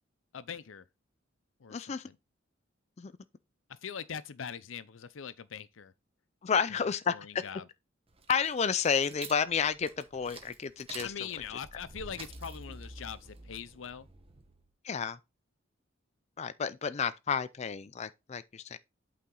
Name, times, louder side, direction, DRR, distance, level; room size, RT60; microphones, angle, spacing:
voice 1, 0.3-0.8 1.6-2.2 3.7-5.9 6.7-6.8 7.1-7.6 11.0-14.1, left 7 dB, 85° left, 0.6 m, -42 dB
voice 2, 1.7-2.1 3.0-3.1 6.4-7.4 8.3-11.1 14.8-15.2 16.4-18.8, left 6 dB, 35° left, 0.4 m, -31 dB
sound 1, 8.1-14.6, right 3 dB, 30° right, 1.1 m, -48 dB
8.5 x 4.1 x 3.8 m
head